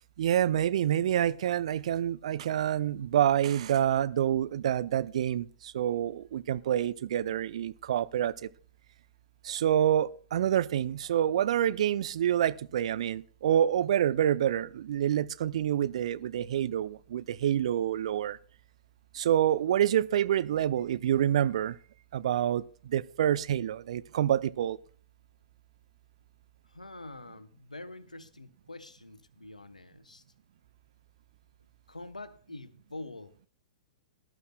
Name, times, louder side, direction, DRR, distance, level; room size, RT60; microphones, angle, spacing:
voice 1, 0.2-8.5 9.4-18.4 19.1-21.8 22.1-24.8, right 10 dB, 55° right, 0.5 m, -27 dB
voice 2, 26.7-30.2 31.9-33.3, left 2 dB, 85° left, 0.9 m, -45 dB
19.0 x 12.0 x 2.3 m
figure-of-eight pair, 110°, 4 cm